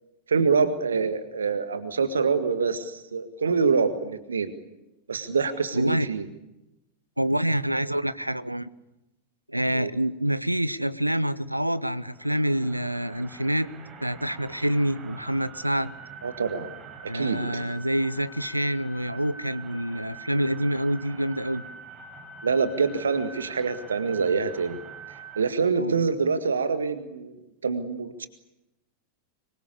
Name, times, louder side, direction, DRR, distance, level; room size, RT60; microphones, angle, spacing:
voice 1, 0.3-4.5 5.1-6.3 9.7-9.9 16.2-16.7 17.1-17.7 22.4-24.8 25.4-27.4 27.6-28.3, right 5 dB, 70° right, 11 dB, 1.8 m, -25 dB
voice 2, 5.7-6.1 7.2-8.7 9.5-13.7 14.0-15.9 17.1-21.6 25.8-26.0, right 1 dB, 90° right, 17 dB, 0.9 m, -27 dB
sound 1, 11.8-25.5, right 4 dB, 25° right, 5.3 m, -45 dB
25.5 x 23.0 x 8.5 m, 0.91 s
figure-of-eight pair, 90°, 0 cm